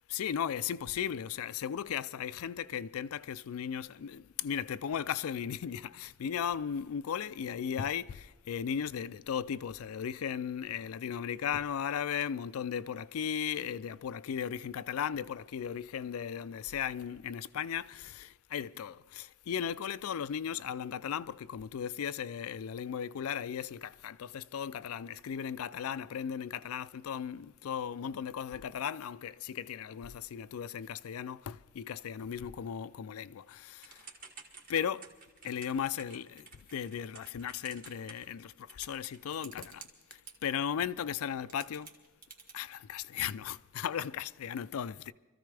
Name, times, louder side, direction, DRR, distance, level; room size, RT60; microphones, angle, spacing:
voice 1, 0.1-33.9 34.7-35.1 35.4-39.8 40.4-41.9 42.5-45.1, left 8 dB, 90° left, 0.4 m, -36 dB
Typing / Telephone, 33.8-40.3 41.2-41.3 41.5-42.5, right 5 dB, 40° right, 1.6 m, -51 dB
25.0 x 14.0 x 3.3 m
head